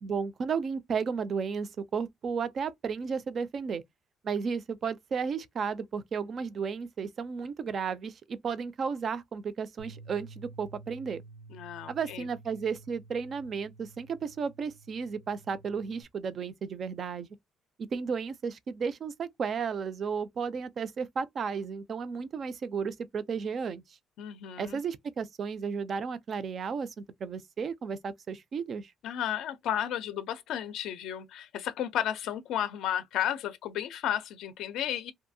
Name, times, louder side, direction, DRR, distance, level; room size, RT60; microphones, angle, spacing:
voice 1, 0.0-3.8 4.2-11.2 11.9-17.3 17.9-23.8 24.6-28.9, right 6 dB, 40° right, 0.4 m, -33 dB
Bass guitar, 9.8-16.0, right 3 dB, 80° right, 0.9 m, -51 dB
voice 2, 11.5-12.2 24.2-24.8 29.0-35.1, left 10 dB, 75° left, 0.4 m, -33 dB
2.6 x 2.3 x 2.6 m
cardioid pair, 160°, 0 cm